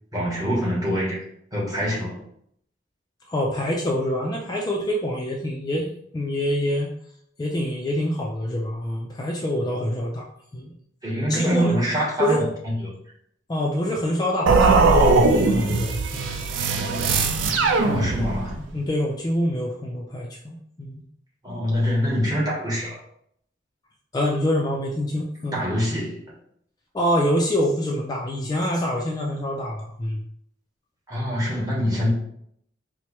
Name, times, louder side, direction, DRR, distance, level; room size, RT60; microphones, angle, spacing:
voice 1, 0.1-1.2 1.5-2.2 11.0-12.9 17.8-18.6 21.4-23.0 25.5-26.2 31.1-32.1, equal, 20° right, -5 dB, 1.1 m, -25 dB
voice 2, 3.3-6.9 7.4-10.2 10.5-10.7 11.3-11.7 12.2-12.4 13.5-16.4 18.5-21.0 24.1-25.6 26.9-30.2, left 1 dB, 20° left, -1 dB, 0.4 m, -26 dB
sound 1, 14.5-18.6, right 3 dB, 80° right, 0.4 m, -20 dB
4.4 x 2.1 x 3.0 m, 0.69 s
head